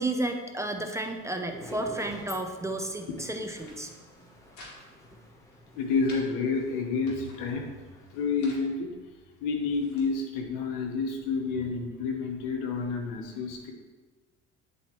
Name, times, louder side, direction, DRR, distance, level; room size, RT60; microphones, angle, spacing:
voice 1, 0.0-3.9, right 2 dB, 10° right, 4 dB, 0.5 m, -32 dB
sound 1, 1.0-8.4, equal, 10° left, 0.9 m, -48 dB
sound 2, 3.4-3.8 4.1-4.8 5.0-5.1 5.5-6.2 6.8-7.4 8.1-8.7 9.3-10.1, left 2 dB, 65° left, 2.0 m, -51 dB
voice 2, 5.7-7.7 8.1-8.9 9.4-13.7, left 4 dB, 90° left, 3 dB, 1.1 m, -29 dB
9.5 x 4.3 x 3.0 m, 1.3 s
cardioid pair, 115°, 31 cm